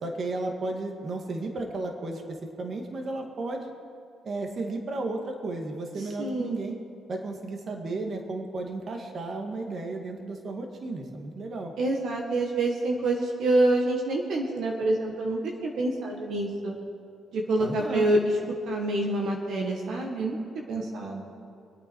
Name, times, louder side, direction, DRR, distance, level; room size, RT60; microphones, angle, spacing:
voice 1, 0.0-2.2 2.6-3.7 4.2-6.8 7.1-11.7 17.6-18.1, right 2 dB, 50° right, 3 dB, 2.0 m, -33 dB
voice 2, 6.2-6.6 11.8-16.8 17.3-18.2 18.7-20.4 20.7-21.3, right 2 dB, 75° right, 0 dB, 1.7 m, -27 dB
25.0 x 8.9 x 4.7 m, 2.4 s
cardioid pair, 90°, 0 cm